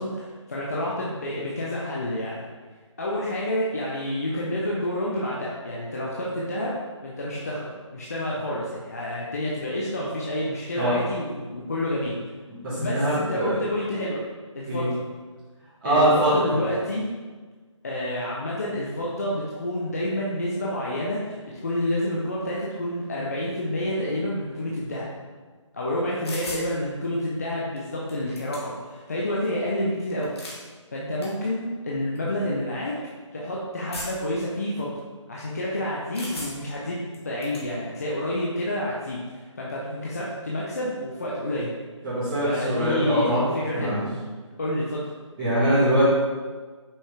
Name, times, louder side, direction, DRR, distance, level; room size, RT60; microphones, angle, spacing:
voice 1, 0.0-2.4 3.0-6.7 7.0-12.2 12.8-14.2 14.5-14.9 15.8-17.1 17.8-25.1 25.7-30.3 30.9-32.9 33.3-34.9 35.3-41.7 42.4-44.0 44.6-45.0, left 1 dB, 30° left, -5 dB, 0.6 m, -29 dB
voice 2, 12.6-13.6 14.7-14.9 15.8-16.6 42.0-43.4 43.7-44.0 45.4-46.0, right 1 dB, 10° right, -16 dB, 1.3 m, -22 dB
sound 1, 26.2-26.7 27.8-27.9 28.1-28.9 30.1-30.6 31.2-31.3 32.1-32.3 33.9-34.3 36.1-36.8 37.1-37.7, left 1 dB, 55° left, 1.5 m, -37 dB
5.7 x 5.4 x 3.3 m, 1.4 s
figure-of-eight pair, 165°, 16 cm